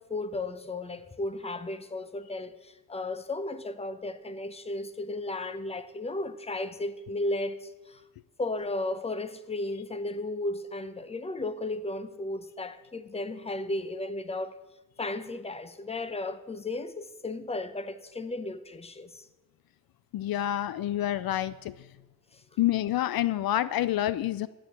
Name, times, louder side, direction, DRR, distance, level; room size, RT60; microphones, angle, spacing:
voice 1, 0.0-8.0 8.4-14.6 15.0-19.3 22.3-22.4, left 2 dB, 15° left, 0.9 m, -34 dB
voice 2, 20.1-21.8 22.6-24.5, left 13 dB, 75° left, 0.6 m, -28 dB
12.0 x 8.7 x 8.9 m
cardioid pair, 110°, 36 cm